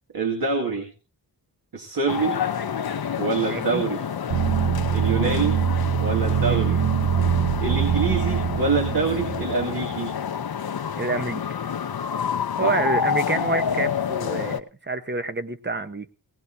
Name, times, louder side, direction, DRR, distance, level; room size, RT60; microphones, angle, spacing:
voice 1, 0.1-0.9 1.7-2.4 3.2-4.0 4.9-5.6 6.0-6.8 7.6-10.1 12.6-12.7, right 4 dB, 55° right, 2 dB, 2.2 m, -25 dB
sound 1, 2.1-14.6, left 7 dB, 55° left, 0.8 m, -28 dB
voice 2, 3.4-3.8 6.4-6.8 11.0-11.4 12.6-16.1, right 3 dB, 25° right, 10 dB, 1.0 m, -28 dB
sound 2, 4.3-10.1, right 9 dB, 80° right, 0.8 m, -24 dB
18.5 x 18.0 x 2.7 m, 0.32 s
wide cardioid pair, 110°, 44 cm